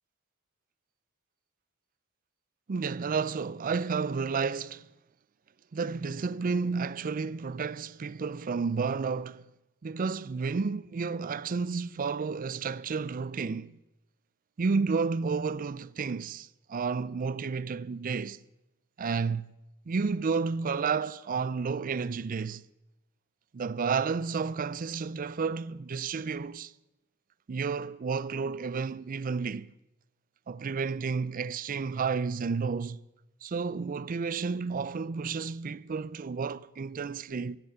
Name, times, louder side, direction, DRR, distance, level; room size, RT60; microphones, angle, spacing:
voice 1, 2.7-4.9 5.7-9.5 9.8-13.7 14.6-18.4 19.0-19.5 19.9-22.6 23.5-26.7 27.5-29.7 30.5-33.0 33.4-37.6, right 5 dB, 40° right, 0.4 m, -31 dB
16.0 x 8.2 x 7.9 m
head